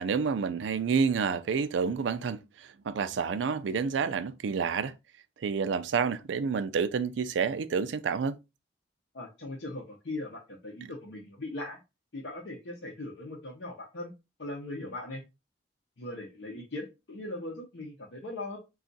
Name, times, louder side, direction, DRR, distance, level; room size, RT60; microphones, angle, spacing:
voice 1, 0.0-4.9 5.4-8.4 10.8-10.9, right 5 dB, 80° right, 0.4 m, -29 dB
voice 2, 9.1-11.8 12.1-14.1 14.4-15.2 16.0-18.6, left 2 dB, 75° left, 0.7 m, -39 dB
2.4 x 2.4 x 3.9 m
head